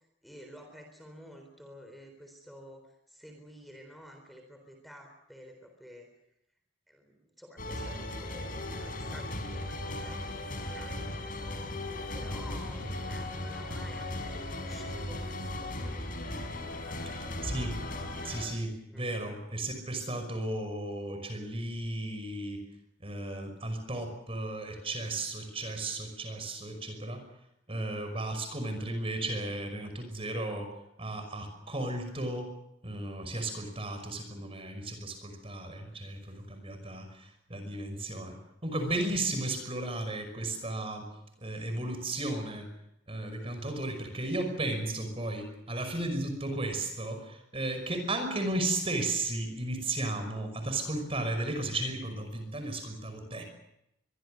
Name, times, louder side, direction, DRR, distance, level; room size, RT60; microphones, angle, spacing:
voice 1, 0.2-6.1 6.9-11.4 12.1-16.1 16.8-17.0 18.9-19.1, equal, ahead, 4 dB, 4.0 m, -51 dB
sound 1, 7.6-18.5, left 1 dB, 50° left, 5.1 m, -37 dB
voice 2, 17.1-17.8 18.2-22.6 23.0-27.2 27.7-30.7 31.0-32.5 32.8-38.4 38.6-41.1 41.4-42.7 43.1-53.4, right 2 dB, 30° right, 7 dB, 5.7 m, -34 dB
24.0 x 23.5 x 6.6 m, 0.81 s
head